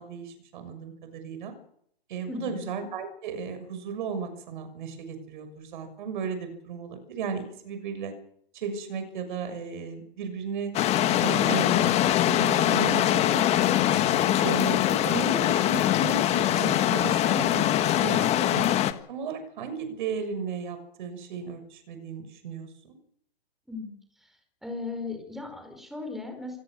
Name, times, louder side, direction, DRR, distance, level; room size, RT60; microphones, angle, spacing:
voice 1, 0.0-1.5 2.1-8.1 8.5-10.7 11.2-13.5 14.4-17.7 17.9-18.7 19.1-23.0, right 6 dB, 50° right, 9 dB, 6.4 m, -35 dB
voice 2, 2.3-2.7 23.7-23.9 24.2-24.3 24.6-26.6, left 3 dB, ahead, 4 dB, 5.0 m, -37 dB
sound 1, 10.7-18.9, left 12 dB, 20° left, 1.6 m, -23 dB
27.0 x 17.0 x 6.6 m, 0.69 s
hypercardioid pair, 135°, 31 cm